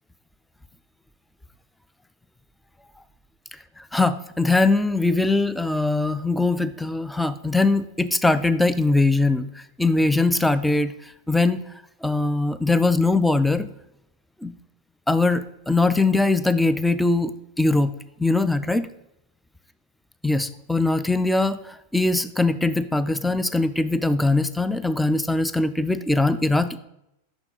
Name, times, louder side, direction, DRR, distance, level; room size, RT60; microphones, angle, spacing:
voice 1, 3.9-9.5 9.8-10.9 11.3-11.6 12.0-13.7 14.4-14.5 15.1-17.9 18.2-18.9 20.2-26.8, left 2 dB, 5° left, 12 dB, 0.3 m, -21 dB
6.0 x 5.9 x 3.7 m, 0.81 s
figure-of-eight pair, 90°, 0 cm